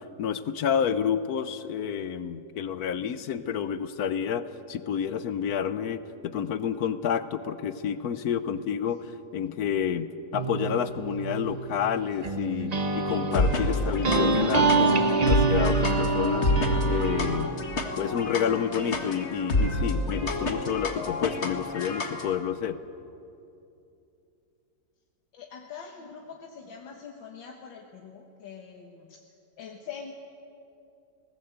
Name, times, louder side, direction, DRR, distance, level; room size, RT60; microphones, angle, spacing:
voice 1, 0.2-9.1 9.3-14.9 15.3-16.5 16.9-17.5 18.0-22.8, left 8 dB, 60° left, 13 dB, 1.2 m, -29 dB
sound 1, 10.3-17.5, right 3 dB, 35° right, 0.7 m, -26 dB
sound 2, 13.3-22.3, left 2 dB, 40° left, 1.9 m, -29 dB
voice 2, 25.3-29.2 29.6-30.1, left 6 dB, 85° left, 1 dB, 2.1 m, -43 dB
21.0 x 19.0 x 8.2 m, 2.7 s
omnidirectional pair, 2.0 m